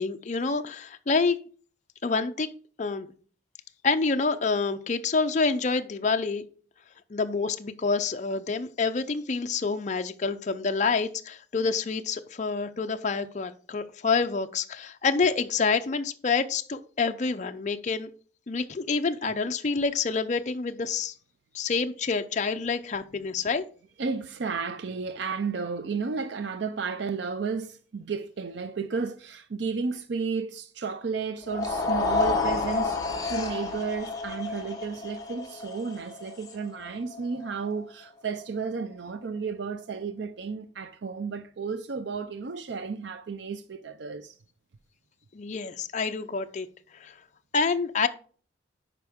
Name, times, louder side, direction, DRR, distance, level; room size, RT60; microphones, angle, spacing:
voice 1, 0.0-1.4 2.0-2.5 2.8-3.1 3.8-6.4 7.1-18.1 18.5-21.1 21.5-23.6 45.3-46.7 47.0-47.1 47.5-48.1, left 4 dB, 40° left, 0.5 m, -27 dB
voice 2, 24.0-44.3, right 5 dB, 65° right, 0.5 m, -33 dB
sound 1, 31.4-37.7, left 3 dB, 20° left, 1.2 m, -30 dB
9.1 x 5.2 x 3.5 m
head